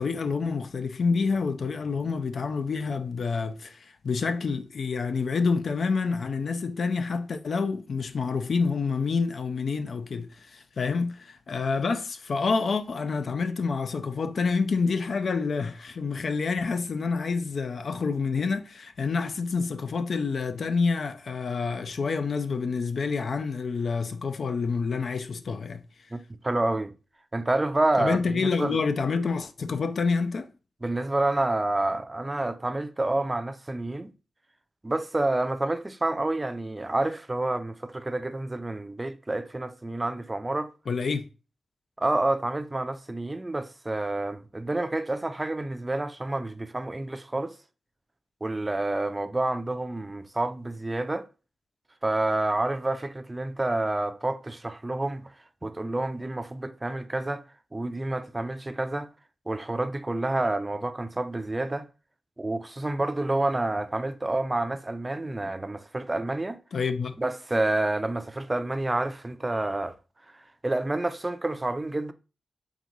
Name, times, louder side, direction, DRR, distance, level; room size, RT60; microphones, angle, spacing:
voice 1, 0.0-25.9 28.0-30.5 40.9-41.3 66.7-67.1, left 4 dB, 70° left, 0.4 m, -28 dB
voice 2, 26.1-26.9 27.3-28.8 30.8-34.1 34.8-40.7 42.0-47.6 48.4-51.2 52.0-55.3 55.6-57.4 57.7-59.1 59.5-61.9 62.4-66.6 67.2-70.0 70.3-72.1, right 2 dB, 25° right, 0.4 m, -28 dB
3.8 x 3.5 x 3.0 m
cardioid pair, 60°, 0 cm